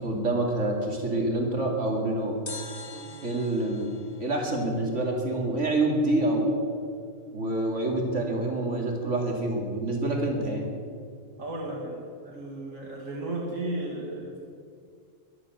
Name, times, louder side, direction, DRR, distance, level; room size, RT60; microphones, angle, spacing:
voice 1, 0.0-2.3 3.2-3.9 4.2-6.6 7.3-10.7, right 2 dB, 65° right, 0 dB, 3.0 m, -27 dB
sound 1, 2.5-5.5 5.8-5.9, left 4 dB, 60° left, 1.9 m, -44 dB
voice 2, 11.4-14.4, right 2 dB, 85° right, -2 dB, 2.4 m, -34 dB
22.0 x 8.0 x 7.9 m, 2.2 s
omnidirectional pair, 1.3 m